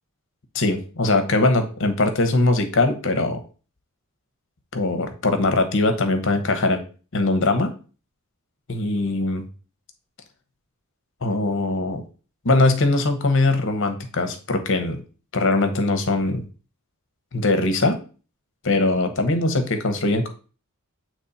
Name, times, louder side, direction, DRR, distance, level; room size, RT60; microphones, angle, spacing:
voice 1, 0.5-3.4 4.7-6.8 7.1-7.7 8.7-9.4 11.2-12.0 12.4-15.0 15.3-16.4 17.3-18.0 18.6-20.3, left 2 dB, 60° left, 7 dB, 1.0 m, -21 dB
8.2 x 3.1 x 4.2 m, 0.37 s
head